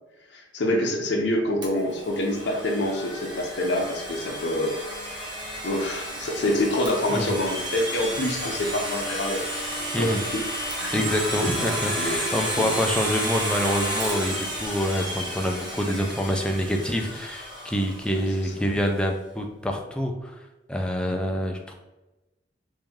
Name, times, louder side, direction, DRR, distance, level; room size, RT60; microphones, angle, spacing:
voice 1, 0.3-5.1 5.6-9.4 10.0-10.4 10.7-11.1 11.4-12.2 12.6-12.8 18.1-18.2, left 1 dB, 75° left, 1 dB, 0.7 m, -27 dB
Domestic sounds home sounds, 1.6-18.4, equal, 25° right, 0.8 m, -32 dB
voice 2, 10.9-20.3 20.7-21.7, equal, 5° left, 2 dB, 0.4 m, -26 dB
3.2 x 2.6 x 3.6 m, 1.0 s
head